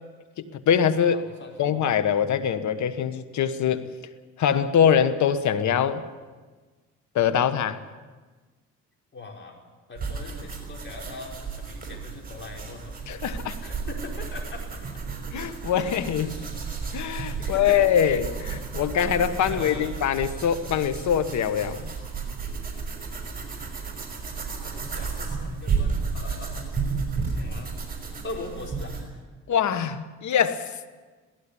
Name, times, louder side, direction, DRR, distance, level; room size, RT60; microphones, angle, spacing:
voice 1, 0.4-1.2 1.6-3.8 4.4-6.0 7.1-7.8 13.1-13.6 15.3-16.4 16.9-21.9 29.5-30.9, left 8 dB, 70° left, 12 dB, 1.3 m, -23 dB
voice 2, 1.1-1.7 9.1-9.6 9.9-13.0 13.6-15.1 16.2-16.6 17.4-17.8 19.3-20.0 24.6-26.9 27.1-27.7 28.2-29.2, left 3 dB, 40° left, 0 dB, 5.3 m, -41 dB
sound 1, 10.0-29.0, right 5 dB, 30° right, 5.9 m, -33 dB
17.0 x 15.5 x 9.9 m, 1.4 s
cardioid pair, 90°, 30 cm